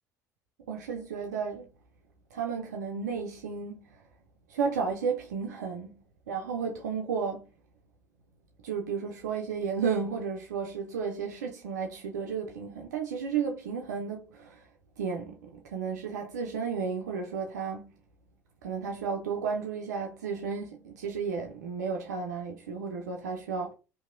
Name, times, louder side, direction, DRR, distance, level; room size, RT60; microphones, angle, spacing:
voice 1, 0.7-1.7 2.3-4.0 4.5-5.9 6.3-7.5 8.6-14.7 15.0-18.0 18.6-23.7, right 6 dB, 75° right, 0.4 m, -33 dB
2.8 x 2.5 x 2.5 m
figure-of-eight pair, 60°, 9 cm